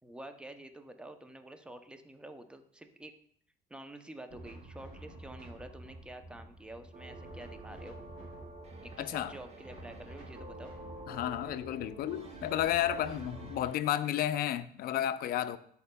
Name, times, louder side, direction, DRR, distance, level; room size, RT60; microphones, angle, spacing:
voice 1, 0.0-3.1 3.7-8.0 8.8-10.7, right 1 dB, 5° right, 0.5 m, -48 dB
sound 1, 4.3-13.7, right 1 dB, 60° right, 2.4 m, -50 dB
sound 2, 6.9-13.8, right 3 dB, 40° right, 0.8 m, -50 dB
voice 2, 9.0-9.3 11.1-15.6, left 11 dB, 65° left, 0.4 m, -32 dB
10.5 x 4.2 x 2.2 m
cardioid pair, 110°, 17 cm